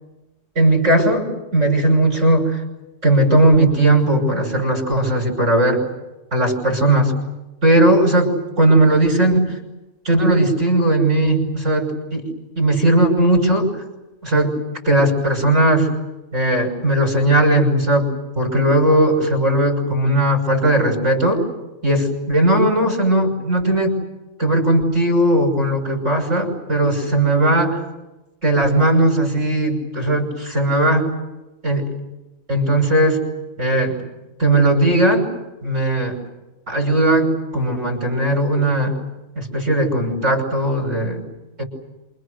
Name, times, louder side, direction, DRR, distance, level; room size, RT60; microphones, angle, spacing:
voice 1, 0.5-2.6 3.0-5.8 6.3-7.1 7.6-9.6 10.0-12.3 12.6-13.7 14.2-14.5 14.8-15.9 16.3-18.1 18.4-21.4 21.8-24.0 24.4-27.8 28.4-31.1 31.6-31.9 32.5-33.2 33.6-34.0 34.4-35.3 35.6-36.2 36.7-39.0 39.3-41.2 41.6-41.7, right 1 dB, 60° right, 3 dB, 6.5 m, -17 dB
29.0 x 28.0 x 6.6 m, 1.0 s
omnidirectional pair, 1.4 m